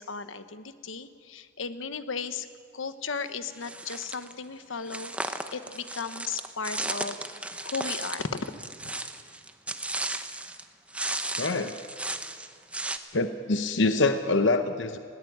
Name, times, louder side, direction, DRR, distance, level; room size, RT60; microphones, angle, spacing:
voice 1, 0.0-2.5 2.7-7.2 7.6-8.5 8.8-8.9, left 5 dB, 90° left, 11 dB, 1.1 m, -35 dB
sound 1, 3.6-4.3 4.9-10.6 10.9-13.0, right 2 dB, 5° right, 0.9 m, -35 dB
voice 2, 11.4-11.8 13.1-15.0, left 3 dB, 70° left, 8 dB, 0.9 m, -25 dB
20.5 x 18.5 x 9.4 m, 2.2 s
head